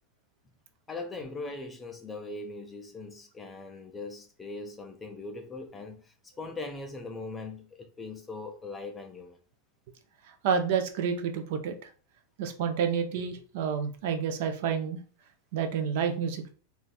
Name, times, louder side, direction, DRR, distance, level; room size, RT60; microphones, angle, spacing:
voice 1, 0.9-9.4, left 3 dB, 10° left, 0.3 m, -40 dB
voice 2, 10.4-11.7 12.4-15.0 15.5-16.5, right 7 dB, 50° right, 0.5 m, -29 dB
2.5 x 2.3 x 4.0 m
supercardioid pair, 175°, 0 cm